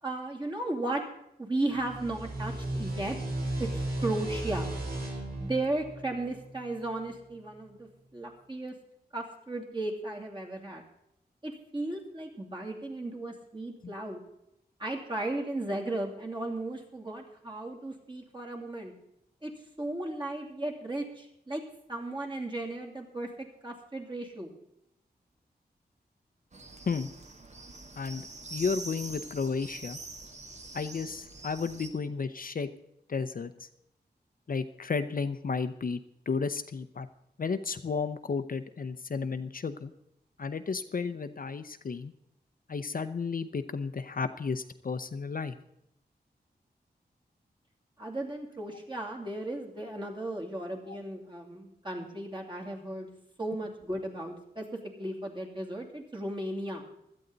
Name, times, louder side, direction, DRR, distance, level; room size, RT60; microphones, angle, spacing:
voice 1, 0.0-1.0 1.4-3.2 3.6-4.7 5.4-8.7 9.1-10.8 11.4-14.2 14.8-18.9 19.4-19.5 19.8-21.6 21.9-24.5 48.0-53.1 53.4-54.7 55.0-56.8, right 2 dB, 30° right, 0 dB, 2.9 m, -35 dB
sound 1, 1.7-7.0, right 1 dB, 65° right, 3.9 m, -35 dB
sound 2, 26.5-31.9, right 3 dB, 45° right, 1.5 m, -44 dB
voice 2, 28.0-30.0 30.7-32.7 33.1-33.7 34.5-36.0 36.3-37.1 37.4-39.9 40.4-42.1 42.7-45.6 50.9-51.0, left 5 dB, 55° left, 10 dB, 0.7 m, -33 dB
16.5 x 12.5 x 4.0 m, 0.80 s
wide cardioid pair, 115°, 17 cm